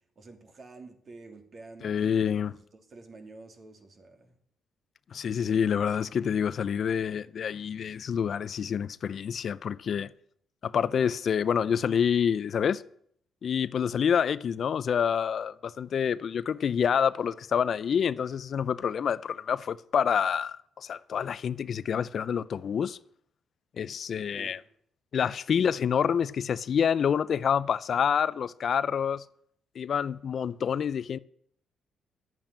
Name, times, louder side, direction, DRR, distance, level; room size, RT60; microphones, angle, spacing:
voice 1, 0.2-4.4 24.4-24.6, right 3 dB, 45° right, 2.9 m, -49 dB
voice 2, 1.8-2.5 5.1-10.1 10.6-12.8 13.4-23.0 23.8-24.6 25.1-29.2 29.8-31.2, left 7 dB, 55° left, 0.5 m, -27 dB
12.5 x 8.9 x 8.6 m
cardioid pair, 90°, 0 cm